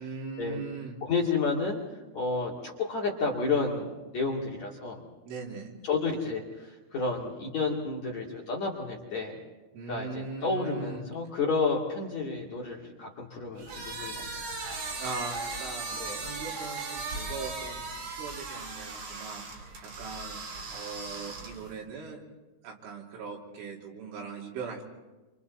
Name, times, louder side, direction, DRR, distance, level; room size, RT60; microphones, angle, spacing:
voice 1, 0.0-1.0 5.3-5.8 9.7-11.1 15.0-20.4 20.7-22.2 22.6-24.8, right 4 dB, 75° right, -1 dB, 5.3 m, -40 dB
voice 2, 1.0-1.8 2.1-5.0 5.8-6.4 6.9-9.3 9.9-14.2 15.9-16.2, left 4 dB, 45° left, -3 dB, 3.0 m, -31 dB
sound 1, 13.6-21.8, right 3 dB, 50° right, 5.0 m, -38 dB
27.5 x 26.5 x 4.2 m, 1.2 s
omnidirectional pair, 5.7 m